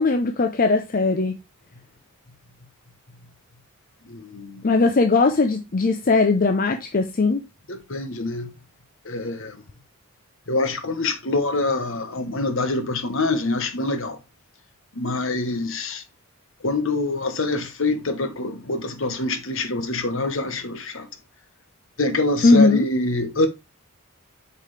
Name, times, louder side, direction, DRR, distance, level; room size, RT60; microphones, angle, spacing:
voice 1, 0.0-1.4 4.6-7.4 22.4-22.8, left 3 dB, 40° left, 0.6 m, -19 dB
voice 2, 4.1-4.6 7.7-8.5 9.0-9.6 10.5-14.2 14.9-16.0 16.6-21.1 22.0-23.5, left 2 dB, 60° left, 1.2 m, -25 dB
8.7 x 4.8 x 3.3 m
head